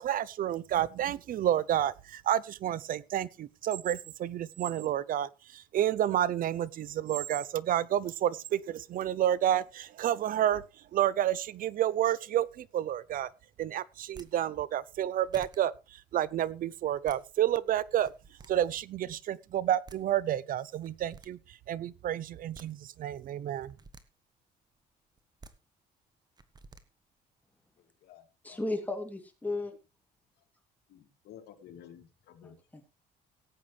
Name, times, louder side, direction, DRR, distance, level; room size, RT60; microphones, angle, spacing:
voice 1, 0.0-10.6 10.9-13.3 13.6-18.1 18.5-23.7, right 11 dB, 55° right, 0.7 m, -30 dB
sound 1, 14.0-14.3 15.0-15.1 15.3-15.6 16.8-17.2 17.9-18.5 19.6-19.7 19.9-20.0 20.8-21.3 22.3-22.7 23.6-24.0 25.2-25.5 26.4-26.8, right 3 dB, 25° right, 1.3 m, -51 dB
voice 2, 27.8-28.6 30.9-32.6, left 10 dB, 75° left, 2.4 m, -53 dB
voice 3, 28.4-29.7 32.4-32.9, left 2 dB, 10° left, 2.9 m, -35 dB
17.5 x 8.6 x 3.3 m
cardioid pair, 110°, 17 cm